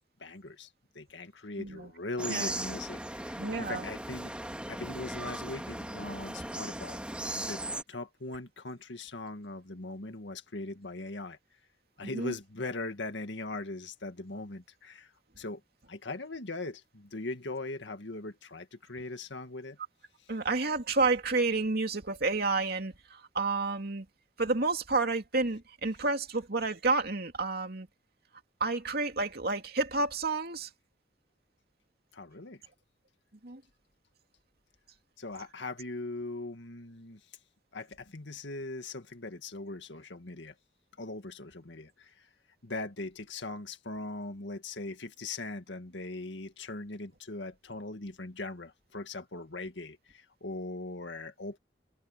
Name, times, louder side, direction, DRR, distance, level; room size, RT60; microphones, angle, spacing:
voice 1, 0.2-4.3 4.7-7.0 7.4-7.6 7.9-11.4 12.0-15.1 15.4-15.6 15.9-19.8 32.1-32.6 35.2-37.2 37.7-40.5 41.0-42.3 42.6-51.6, left 2 dB, 85° left, 1.9 m, -40 dB
voice 2, 1.6-1.9 2.3-2.5 3.4-3.9 12.0-12.3 20.3-24.1 24.4-27.9 28.6-30.7 33.4-33.6, right 3 dB, 60° right, 2.7 m, -30 dB
sound 1, 2.2-7.8, right 1 dB, 5° right, 2.2 m, -38 dB
head